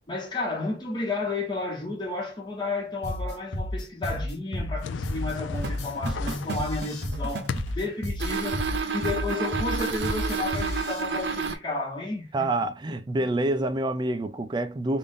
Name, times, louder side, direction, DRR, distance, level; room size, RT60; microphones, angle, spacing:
voice 1, 0.1-8.6 8.9-12.5, left 3 dB, 25° left, 1.0 m, -32 dB
sound 1, 3.0-11.0, left 1 dB, 60° left, 0.8 m, -31 dB
sound 2, 4.8-8.0, left 5 dB, 90° left, 0.4 m, -37 dB
sound 3, 5.6-7.7 8.2-11.5, right 5 dB, 65° right, 0.7 m, -31 dB
voice 2, 12.3-15.0, right 2 dB, 25° right, 0.3 m, -27 dB
3.5 x 2.6 x 3.6 m
head